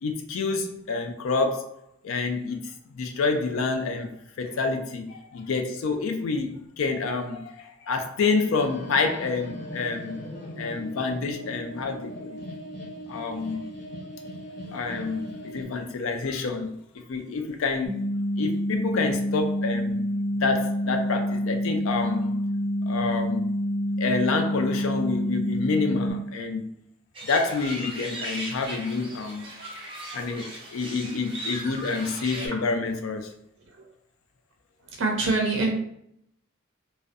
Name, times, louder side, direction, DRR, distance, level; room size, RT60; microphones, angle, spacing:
voice 1, 0.0-1.8 2.0-10.2 10.6-12.4 13.1-13.7 14.7-18.0 18.4-20.0 20.3-22.4 22.8-23.5 24.0-26.7 27.2-29.4 30.1-33.3, left 4 dB, 75° left, 5 dB, 0.4 m, -28 dB
sound 1, 8.5-15.7, equal, 50° left, 0.8 m, -39 dB
sound 2, 17.8-26.1, equal, 20° left, 0.5 m, -27 dB
sound 3, 27.1-32.5, right 1 dB, 25° right, 0.6 m, -37 dB
voice 2, 34.9-35.7, right 3 dB, 65° right, 0 dB, 0.4 m, -25 dB
2.5 x 2.1 x 2.4 m, 0.72 s
head